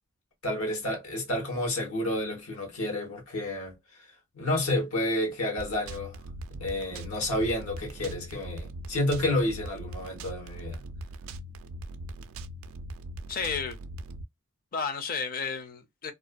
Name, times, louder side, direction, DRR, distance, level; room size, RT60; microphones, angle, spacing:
voice 1, 0.4-3.7 4.3-6.2 6.6-10.8, left 1 dB, 90° left, 1.0 m, -30 dB
sound 1, 5.6-14.2, right 1 dB, 70° right, 0.3 m, -41 dB
voice 2, 13.3-13.8 14.7-16.1, left 5 dB, 40° left, 0.4 m, -32 dB
2.4 x 2.2 x 2.4 m
head